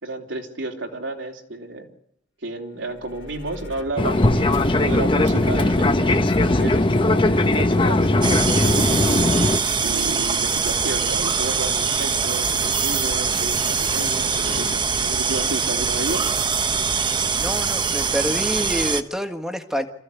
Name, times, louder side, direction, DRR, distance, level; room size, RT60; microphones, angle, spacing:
voice 1, 0.0-1.9 2.4-9.2 9.8-16.3, right 2 dB, 90° right, 1 dB, 3.5 m, -32 dB
sound 1, 2.7-14.7, left 1 dB, 80° left, 2.9 m, -42 dB
Fixed-wing aircraft airplane, 4.0-9.6, left 1 dB, 25° left, 1.0 m, -19 dB
sound 2, 8.2-19.0, right 5 dB, 25° right, 0.9 m, -23 dB
voice 2, 17.4-19.9, equal, 5° right, 6 dB, 1.6 m, -27 dB
27.0 x 15.0 x 8.4 m, 0.75 s
head